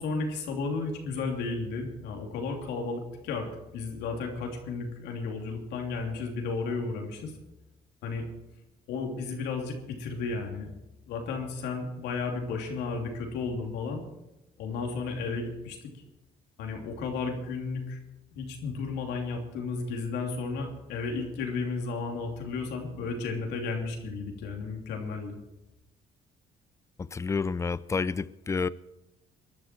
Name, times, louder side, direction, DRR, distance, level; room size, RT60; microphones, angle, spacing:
voice 1, 0.0-3.5 3.7-7.3 8.0-8.3 8.9-10.7 11.1-14.0 14.6-15.9 16.6-18.0 18.3-25.3, left 4 dB, 85° left, 3.0 m, -33 dB
voice 2, 27.1-28.7, left 4 dB, 15° left, 0.5 m, -29 dB
23.0 x 11.5 x 4.5 m
cardioid pair, 110°, 17 cm